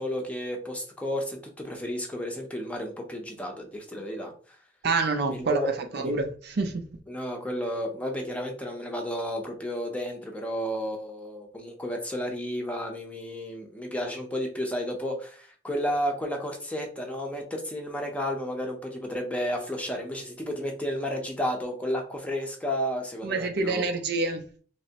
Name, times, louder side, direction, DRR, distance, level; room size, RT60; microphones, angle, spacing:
voice 1, 0.0-4.3 5.3-5.7 6.0-6.1 7.1-24.0, equal, 5° left, 0.6 m, -32 dB
voice 2, 4.8-6.9 23.2-24.4, right 3 dB, 55° right, 0.5 m, -27 dB
3.3 x 3.0 x 2.8 m
head